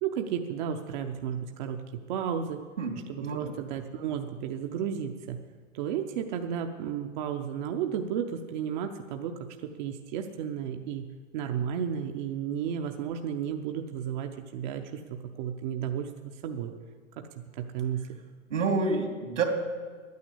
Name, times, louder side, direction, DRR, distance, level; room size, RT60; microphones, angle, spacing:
voice 1, 0.0-2.6 3.1-5.4 5.7-11.0 11.3-16.7 17.2-18.2, right 8 dB, 40° right, 4 dB, 0.7 m, -33 dB
voice 2, 3.2-3.5 18.5-19.4, right 4 dB, 80° right, 4 dB, 2.8 m, -28 dB
10.5 x 9.5 x 8.3 m, 1.5 s
hypercardioid pair, 135°, 37 cm